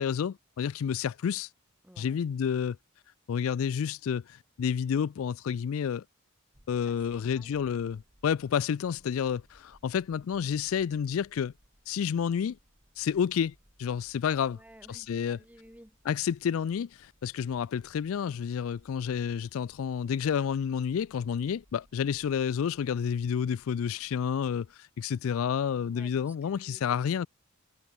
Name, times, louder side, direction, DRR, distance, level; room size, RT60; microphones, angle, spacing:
voice 1, 0.0-1.5 2.0-2.8 3.3-6.0 6.7-11.5 11.9-12.6 13.0-14.6 14.9-15.4 16.1-27.3, left 7 dB, 75° left, 0.3 m, -30 dB
voice 2, 1.8-2.2 6.8-7.5 14.5-16.0 25.9-27.3, right 1 dB, 5° right, 2.3 m, -56 dB
sound 1, 6.5-24.8, equal, 30° right, 4.9 m, -64 dB
head